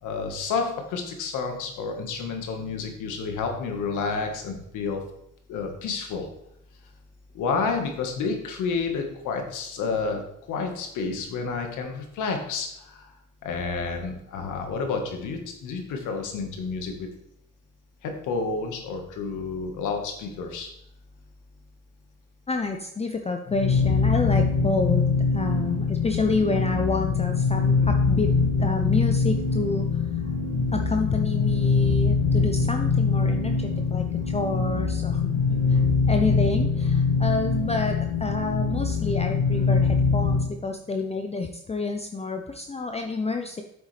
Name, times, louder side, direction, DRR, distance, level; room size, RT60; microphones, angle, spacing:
voice 1, 0.0-5.0 5.5-6.3 7.3-10.2 10.5-13.1 13.4-17.1 18.0-20.7, left 4 dB, 85° left, 4 dB, 1.7 m, -30 dB
voice 2, 22.5-25.0 25.3-28.3 28.6-29.9 30.7-34.0 34.3-35.4 35.7-35.8 36.1-43.6, left 3 dB, 20° left, 4 dB, 0.7 m, -28 dB
sound 1, 23.5-40.5, left 4 dB, 60° left, 1.9 m, -23 dB
8.8 x 7.1 x 3.4 m, 0.78 s
cardioid pair, 90°, 30 cm